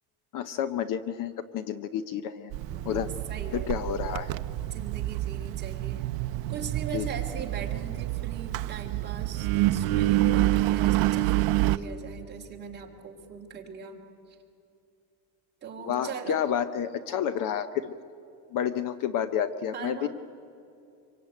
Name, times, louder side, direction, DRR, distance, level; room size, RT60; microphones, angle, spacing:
voice 1, 0.3-2.5 2.9-3.1 3.5-4.3 6.9-7.1 15.8-17.9 18.5-20.1, left 9 dB, 45° left, 12 dB, 0.8 m, -30 dB
Engine, 2.5-11.8, right 15 dB, 55° right, 0.7 m, -27 dB
voice 2, 2.7-3.7 4.6-6.1 6.5-14.4 15.6-16.4 19.7-20.1, right 6 dB, 20° right, 0 dB, 2.9 m, -40 dB
25.5 x 24.0 x 9.2 m, 2.6 s
cardioid pair, 170°, 45 cm